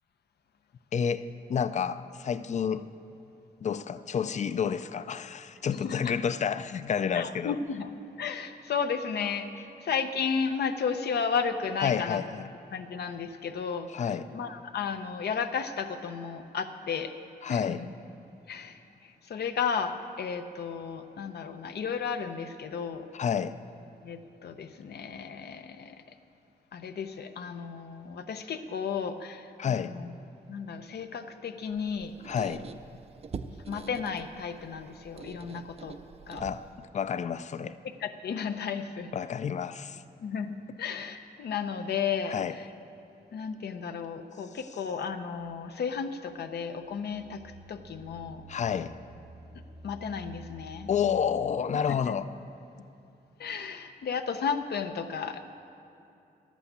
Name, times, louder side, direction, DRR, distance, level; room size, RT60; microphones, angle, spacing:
voice 1, 0.9-2.8 3.6-7.6 11.8-12.5 13.9-14.3 17.4-17.8 23.1-23.6 29.6-29.9 32.2-32.6 36.4-37.8 39.1-40.0 42.2-42.6 48.5-48.9 50.9-52.2, left 7 dB, 45° left, 13 dB, 0.4 m, -30 dB
voice 2, 7.1-7.9 8.2-12.2 12.7-13.9 14.3-17.1 17.5-17.9 18.5-23.1 24.0-26.2 26.7-30.1 30.5-32.1 33.7-36.0 36.3-36.4 38.0-39.1 40.2-42.7 43.3-47.4 47.7-48.4 49.8-50.9 51.9-52.2 53.4-55.4, left 6 dB, 80° left, 8 dB, 0.7 m, -33 dB
Squeak, 31.7-36.9, right 5 dB, 40° right, 0.4 m, -45 dB
sound 1, 46.8-51.9, right 1 dB, 80° right, 1.3 m, -50 dB
11.5 x 8.4 x 8.0 m, 2.8 s
wide cardioid pair, 145°, 17 cm